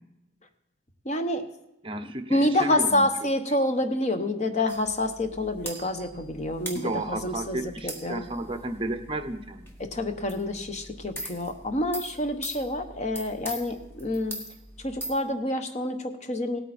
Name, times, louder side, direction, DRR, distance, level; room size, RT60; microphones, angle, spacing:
voice 1, 1.0-1.5 2.3-8.3 9.8-14.4 14.8-16.6, left 1 dB, 40° left, 7 dB, 1.0 m, -28 dB
voice 2, 1.8-3.1 6.7-9.7, right 1 dB, 30° right, 8 dB, 0.9 m, -32 dB
sound 1, 4.7-15.2, equal, 15° left, 1.5 m, -42 dB
17.5 x 8.7 x 4.2 m, 0.88 s
head